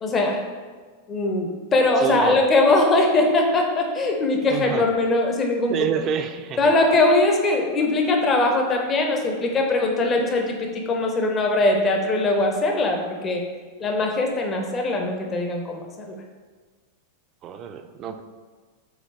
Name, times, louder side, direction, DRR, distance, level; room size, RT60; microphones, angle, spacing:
voice 1, 0.0-0.4 1.1-5.8 6.6-13.4 13.8-16.2, left 2 dB, 25° left, 2 dB, 0.5 m, -21 dB
voice 2, 2.0-2.4 4.5-4.9 5.7-6.7 17.4-18.2, right 7 dB, 35° right, 8 dB, 0.3 m, -28 dB
4.8 x 3.3 x 3.1 m, 1.5 s
figure-of-eight pair, 90°, 0 cm